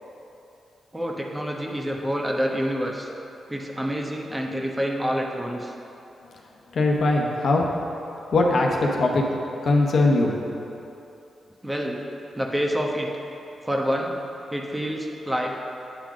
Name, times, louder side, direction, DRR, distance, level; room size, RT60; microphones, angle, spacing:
voice 1, 0.9-3.1 3.5-5.7 11.6-12.0 12.3-13.1 13.6-14.1 14.5-15.5, equal, 15° right, 0 dB, 1.1 m, -27 dB
voice 2, 6.7-7.7 8.3-9.2 9.6-10.3, left 2 dB, 65° left, 0 dB, 0.9 m, -20 dB
8.9 x 3.8 x 6.1 m, 2.8 s
supercardioid pair, 50°, 0 cm